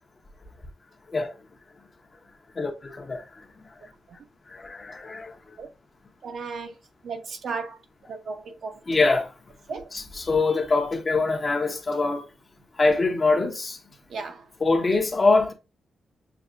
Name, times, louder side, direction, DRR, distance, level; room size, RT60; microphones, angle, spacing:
voice 1, 2.6-3.2 4.5-5.3 8.9-9.3 10.2-12.2 12.8-13.8 14.6-15.5, left 3 dB, 35° left, 0.8 m, -23 dB
voice 2, 6.2-7.8 8.1-8.8 9.7-9.9 14.1-14.5, right 4 dB, 65° right, 0.9 m, -35 dB
6.8 x 2.4 x 2.4 m
cardioid pair, 100°, 0 cm